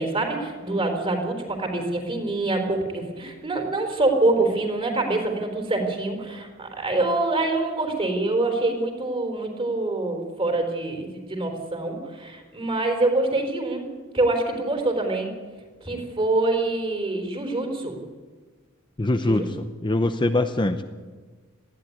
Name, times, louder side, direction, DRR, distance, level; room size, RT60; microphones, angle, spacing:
voice 1, 0.0-13.8 14.1-15.3 15.8-18.0 19.2-19.5, right 2 dB, 25° right, 3 dB, 4.1 m, -25 dB
voice 2, 19.0-20.8, left 2 dB, 20° left, 8 dB, 0.7 m, -23 dB
19.5 x 15.0 x 9.4 m, 1.4 s
head